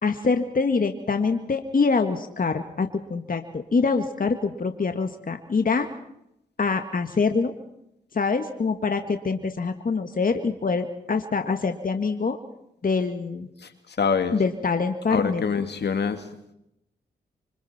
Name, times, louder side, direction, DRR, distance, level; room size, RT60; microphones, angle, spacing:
voice 1, 0.0-5.9 6.6-7.5 8.1-12.4 12.8-13.5 14.3-15.5, left 4 dB, 50° left, 6 dB, 2.0 m, -25 dB
voice 2, 13.6-14.4 15.1-16.2, left 6 dB, 65° left, 8 dB, 2.3 m, -25 dB
27.5 x 25.5 x 4.5 m, 0.80 s
supercardioid pair, 40°, 19 cm